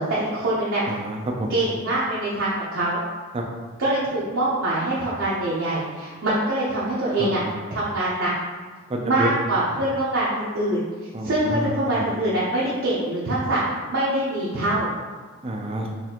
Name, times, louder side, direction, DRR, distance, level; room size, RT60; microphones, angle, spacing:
voice 1, 0.0-0.8 1.5-3.0 3.8-7.4 7.7-8.3 9.0-10.8 11.2-14.9, right 1 dB, 65° right, -9 dB, 0.7 m, -24 dB
voice 2, 0.9-1.5 3.3-3.4 7.2-7.5 8.9-9.3 11.1-11.7 15.4-15.9, right 1 dB, 25° right, 1 dB, 0.4 m, -28 dB
4.1 x 2.7 x 2.8 m, 1.4 s
head